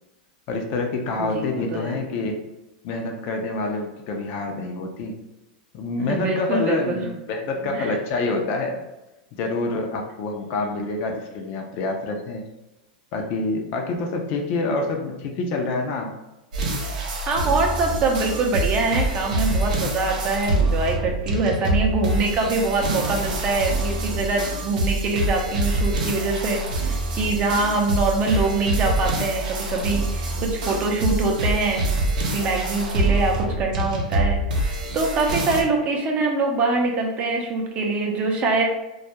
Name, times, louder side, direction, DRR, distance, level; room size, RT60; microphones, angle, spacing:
voice 1, 0.5-2.4 2.8-5.2 5.7-8.8 9.4-12.4 13.1-16.1, left 3 dB, 50° left, 3 dB, 0.4 m, -27 dB
voice 2, 1.2-2.0 6.1-7.1 7.7-8.0 17.3-31.9 32.3-38.6, right 3 dB, 35° right, 1 dB, 0.5 m, -24 dB
sound 1, 16.5-35.6, right 1 dB, 80° right, 0.5 m, -25 dB
2.2 x 2.1 x 2.8 m, 0.98 s
hypercardioid pair, 125°, 4 cm